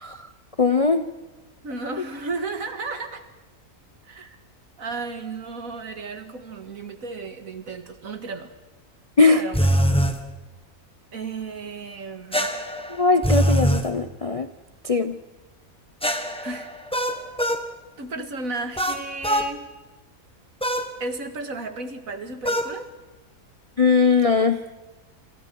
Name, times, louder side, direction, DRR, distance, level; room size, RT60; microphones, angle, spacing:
voice 1, 0.6-1.1 9.2-9.4 12.9-14.5 14.8-15.2 23.8-24.6, left 4 dB, 35° left, 10 dB, 0.5 m, -20 dB
voice 2, 1.6-3.2 4.0-4.4 4.8-8.5 9.3-9.8 11.1-12.5 16.4-16.7 18.0-19.7 21.0-22.9, right 3 dB, 65° right, 7 dB, 2.2 m, -34 dB
sound 1, 9.5-10.2 12.3-13.9 16.0-17.7 18.8-19.5 20.6-20.9 22.4-22.7, equal, 5° left, 1.4 m, -23 dB
27.0 x 27.0 x 4.6 m, 1.2 s
omnidirectional pair, 1.6 m